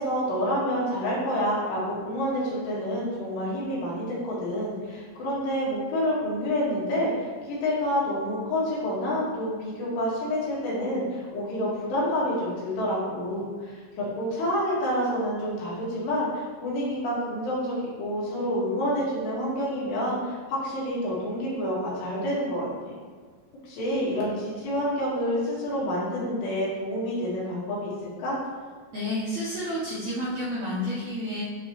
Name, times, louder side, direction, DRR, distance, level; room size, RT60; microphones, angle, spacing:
voice 1, 0.0-23.0 23.6-27.9 28.2-28.4, equal, 85° left, -7 dB, 4.0 m, -28 dB
voice 2, 28.9-31.4, left 1 dB, 75° right, -8 dB, 1.7 m, -30 dB
9.7 x 4.0 x 3.1 m, 1.5 s
omnidirectional pair, 4.8 m